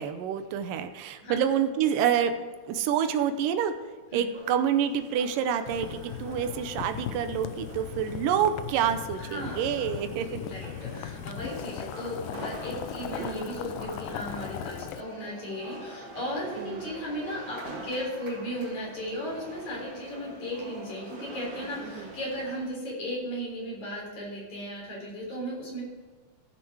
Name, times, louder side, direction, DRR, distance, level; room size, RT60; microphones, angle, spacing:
voice 1, 0.0-2.4 2.6-3.7 4.1-10.4 16.6-16.9 21.8-22.1, right 8 dB, 85° right, 9 dB, 2.4 m, -27 dB
sound 1, 4.3-22.7, right 2 dB, 65° right, 3.5 m, -45 dB
Boiling, 5.7-15.0, left 11 dB, 85° left, 2.2 m, -38 dB
voice 2, 9.1-25.8, equal, 60° left, -3 dB, 5.0 m, -36 dB
15.0 x 6.2 x 4.8 m, 1.4 s
omnidirectional pair, 3.7 m